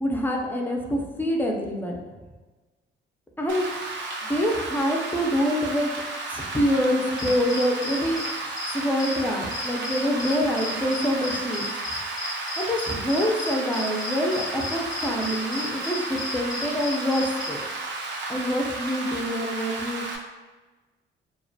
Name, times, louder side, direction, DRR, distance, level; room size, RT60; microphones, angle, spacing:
voice 1, 0.0-2.1 3.4-3.7 4.2-5.9 6.3-8.2 8.7-11.6 12.6-17.6 18.3-20.0, equal, 10° left, 0 dB, 0.4 m, -26 dB
Rain, 3.5-20.2, right 2 dB, 65° right, 0.5 m, -33 dB
sound 1, 7.1-17.5, left 2 dB, 85° left, 0.6 m, -35 dB
2.3 x 2.1 x 2.6 m, 1.3 s
cardioid pair, 90°, 20 cm